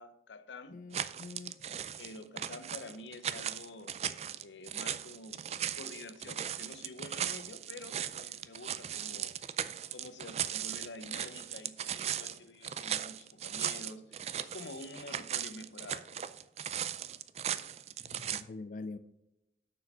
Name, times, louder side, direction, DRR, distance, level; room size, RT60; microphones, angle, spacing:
voice 1, 0.0-0.8 2.0-4.0 4.4-5.4 5.8-9.4 9.9-16.2, left 2 dB, 90° left, 0.7 m, -48 dB
voice 2, 0.7-1.6 18.0-19.0, left 3 dB, 45° left, 0.3 m, -44 dB
sound 1, 0.9-18.4, right 9 dB, 35° right, 0.3 m, -38 dB
6.9 x 6.4 x 5.6 m
head